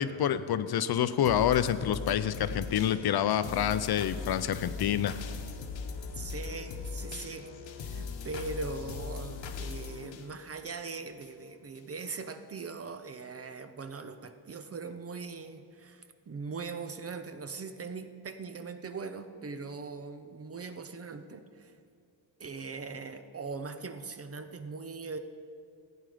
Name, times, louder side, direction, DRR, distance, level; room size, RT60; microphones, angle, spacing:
voice 1, 0.0-5.1, left 10 dB, 55° left, 13 dB, 0.5 m, -27 dB
sound 1, 1.2-11.3 11.8-11.9, left 5 dB, 80° left, 1.0 m, -40 dB
voice 2, 6.2-7.5 7.8-21.7 22.4-25.2, right 4 dB, 35° right, 9 dB, 0.5 m, -40 dB
15.0 x 9.2 x 4.9 m, 2.4 s
wide cardioid pair, 165°, 45 cm